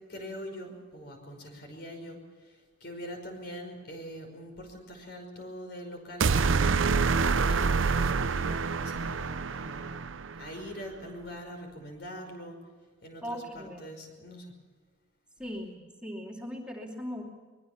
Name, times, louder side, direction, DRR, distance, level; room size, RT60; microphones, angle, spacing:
voice 1, 0.1-2.2 2.8-6.5 6.9-10.0 10.4-12.6 13.0-14.4, equal, 55° left, 4 dB, 5.5 m, -43 dB
sound 1, 6.2-10.5, right 4 dB, 90° right, 0.7 m, -27 dB
voice 2, 13.2-13.8 15.4-17.3, equal, 5° right, -1 dB, 2.7 m, -39 dB
24.5 x 21.5 x 7.2 m, 1.5 s
head